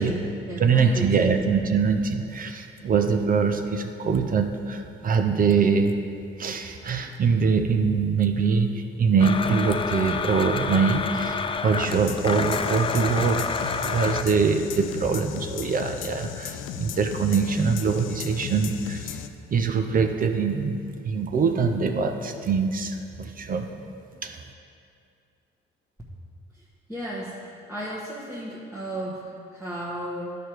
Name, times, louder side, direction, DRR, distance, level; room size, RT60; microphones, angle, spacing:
voice 1, 0.0-1.3 26.5-26.6 26.9-30.4, right 1 dB, 10° right, -8 dB, 1.2 m, -34 dB
voice 2, 0.6-5.9 6.4-19.2 19.5-20.8 21.0-23.7 24.2-24.4, right 5 dB, 45° right, 6 dB, 0.6 m, -23 dB
Domestic sounds home sounds, 9.2-14.2, left 5 dB, 25° left, 0.4 m, -28 dB
sound 1, 11.8-19.3, left 10 dB, 90° left, 0.4 m, -36 dB
11.0 x 5.0 x 4.5 m, 2.4 s
cardioid pair, 90°, 20 cm